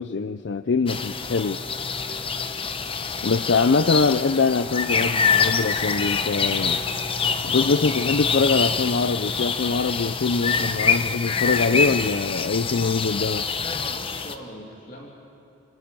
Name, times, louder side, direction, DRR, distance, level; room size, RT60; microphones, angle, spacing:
voice 1, 0.0-1.6 3.2-6.8 7.4-13.5, left 4 dB, 65° left, 11 dB, 0.5 m, -23 dB
sound 1, 0.9-14.3, left 5 dB, 30° left, 0.8 m, -25 dB
voice 2, 13.9-15.1, equal, 45° left, -2 dB, 2.8 m, -42 dB
29.0 x 26.5 x 5.5 m, 2.6 s
head